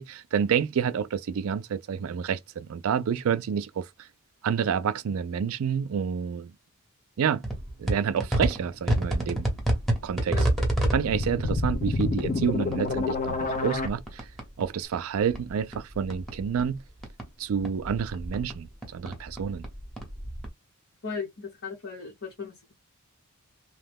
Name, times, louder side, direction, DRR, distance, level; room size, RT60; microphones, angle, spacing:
voice 1, 0.0-3.8 4.4-6.5 7.2-7.4 7.8-9.5 10.0-10.5 10.9-14.2 14.6-16.8 17.4-18.7 18.9-19.6, right 7 dB, 65° right, 0.4 m, -28 dB
sound 1, 7.4-14.7 14.9-17.3 17.6-20.5, right 1 dB, ahead, 0.9 m, -30 dB
sound 2, 10.7-13.9, left 3 dB, 35° left, 0.5 m, -28 dB
voice 2, 21.0-22.7, left 5 dB, 60° left, 0.9 m, -36 dB
2.9 x 2.2 x 3.4 m
head